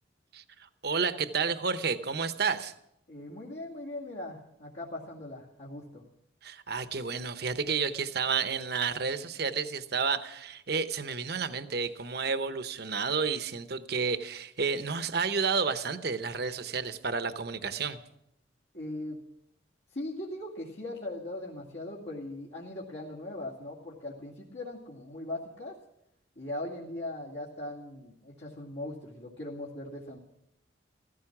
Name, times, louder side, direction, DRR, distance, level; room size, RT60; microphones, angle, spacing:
voice 1, 0.8-2.7 6.4-18.0, right 5 dB, 55° right, 10 dB, 0.9 m, -31 dB
voice 2, 3.1-6.0 18.7-19.2 19.9-25.8 26.4-30.2, left 1 dB, 65° left, -5 dB, 2.4 m, -39 dB
15.0 x 14.5 x 6.0 m, 0.78 s
head